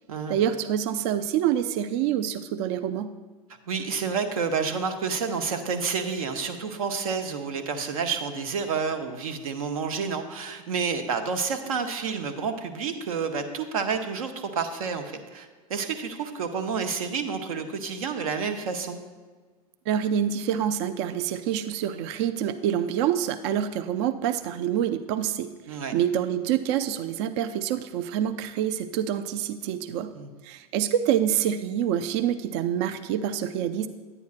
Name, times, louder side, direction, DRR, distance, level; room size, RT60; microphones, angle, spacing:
voice 1, 0.3-3.1 19.9-30.1 30.4-33.9, right 10 dB, 45° right, 10 dB, 0.4 m, -26 dB
voice 2, 3.7-19.0 25.7-25.9 30.1-30.3, right 5 dB, 65° right, 7 dB, 0.9 m, -29 dB
9.7 x 9.0 x 2.4 m, 1.4 s
figure-of-eight pair, 95°, 20 cm